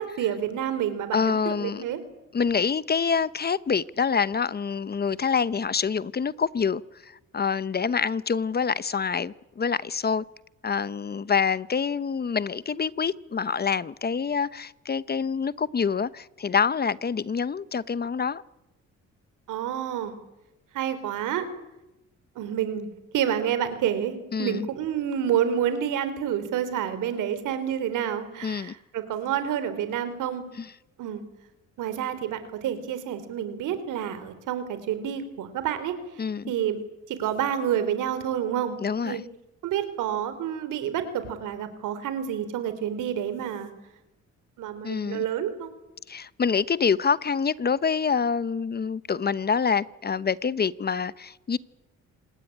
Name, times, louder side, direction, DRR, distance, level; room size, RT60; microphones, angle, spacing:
voice 1, 0.0-2.0 19.5-20.2 20.7-21.5 22.4-22.9 23.1-30.4 31.0-31.2 31.8-36.8 37.1-38.8 39.0-39.2 39.6-43.7 44.6-45.7, right 9 dB, 85° right, 3.8 m, -29 dB
voice 2, 1.1-1.8 2.3-10.2 10.6-18.4 24.3-24.7 28.4-28.7 30.6-30.7 36.2-36.5 38.8-39.2 44.8-45.2 46.1-51.6, left 6 dB, 35° left, 0.8 m, -26 dB
26.5 x 19.5 x 10.0 m
cardioid pair, 90°, 30 cm